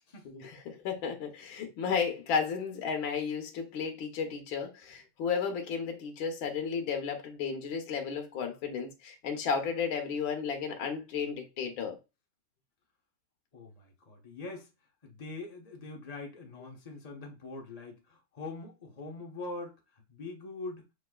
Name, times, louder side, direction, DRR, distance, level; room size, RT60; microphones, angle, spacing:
voice 1, 0.3-12.0, left 6 dB, 70° left, 1.7 m, -33 dB
voice 2, 13.5-14.7 15.0-19.8 20.1-20.9, left 3 dB, 30° left, 0.7 m, -43 dB
6.3 x 3.0 x 2.3 m
omnidirectional pair, 2.3 m